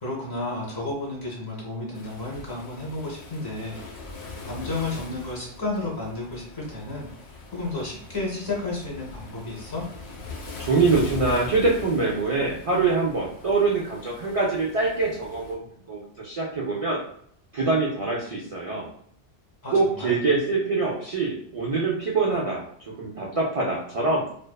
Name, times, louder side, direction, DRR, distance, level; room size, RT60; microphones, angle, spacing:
voice 1, 0.0-4.0 4.5-9.8 19.6-20.2, left 2 dB, 25° left, -4 dB, 0.6 m, -32 dB
Waves surf, 1.9-15.5, left 3 dB, 70° left, 0.9 m, -41 dB
voice 2, 10.6-15.6 15.9-17.0 17.5-18.9 19.7-24.3, right 3 dB, 65° right, -5 dB, 0.3 m, -24 dB
2.5 x 2.3 x 2.2 m, 0.66 s
omnidirectional pair, 1.2 m